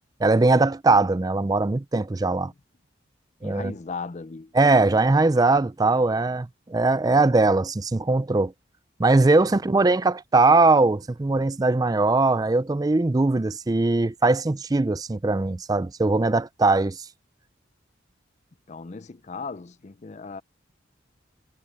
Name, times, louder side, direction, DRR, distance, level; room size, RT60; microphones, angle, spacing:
voice 1, 0.2-2.5 3.4-3.7 4.5-8.5 9.0-17.0, right 3 dB, 20° right, 0.4 m, -20 dB
voice 2, 3.4-4.5 9.4-9.8 18.7-20.4, left 4 dB, 35° left, 0.5 m, -37 dB
head